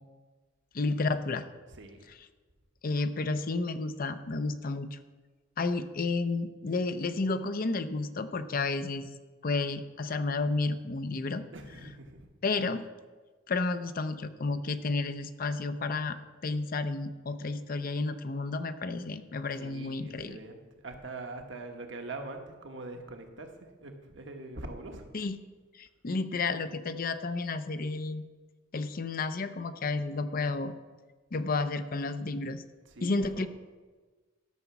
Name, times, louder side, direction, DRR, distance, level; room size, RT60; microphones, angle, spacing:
voice 1, 0.7-1.5 2.8-5.0 5.6-9.1 9.4-11.4 12.4-12.8 13.5-16.2 16.4-20.4 25.1-25.4 25.7-28.2 28.7-30.7 31.3-32.6 33.0-33.5, left 3 dB, 45° left, 10 dB, 0.6 m, -31 dB
voice 2, 1.7-2.1 11.5-12.3 19.6-25.1 32.8-33.5, right 2 dB, 65° right, 4 dB, 1.3 m, -43 dB
12.5 x 5.8 x 7.1 m, 1.3 s
head